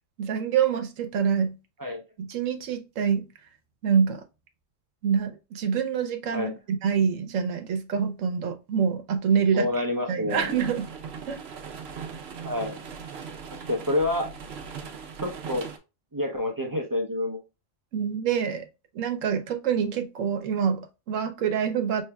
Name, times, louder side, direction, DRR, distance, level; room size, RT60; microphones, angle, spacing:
voice 1, 0.2-1.5 2.2-3.3 3.8-4.2 5.0-9.8 10.1-10.9 11.3-11.4 17.9-18.6 18.9-22.0, right 7 dB, 85° right, 1.0 m, -26 dB
voice 2, 9.5-10.5 12.4-12.7 13.5-14.3 15.2-15.7 16.1-17.4, left 1 dB, 35° right, 0.3 m, -28 dB
sound 1, 10.3-15.8, right 6 dB, 60° right, 0.9 m, -39 dB
5.5 x 3.2 x 2.2 m
omnidirectional pair, 1.3 m